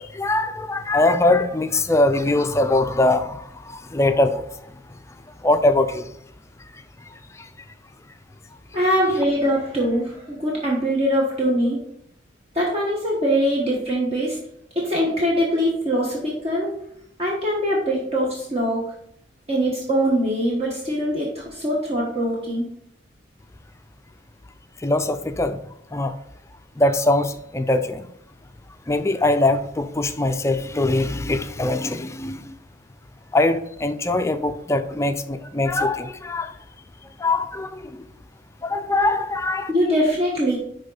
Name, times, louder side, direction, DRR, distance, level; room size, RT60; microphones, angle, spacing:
voice 1, 0.0-4.5 5.4-6.1 7.4-7.5 24.8-25.6 25.9-26.1 26.8-28.0 28.9-32.5 33.3-36.5 37.2-38.0 38.6-39.7, left 2 dB, 15° left, 0.4 m, -22 dB
voice 2, 8.7-11.8 12.5-14.4 14.7-16.7 17.2-18.8 19.5-22.7 39.7-40.6, equal, 35° right, 1.3 m, -22 dB
10.5 x 3.7 x 3.9 m
head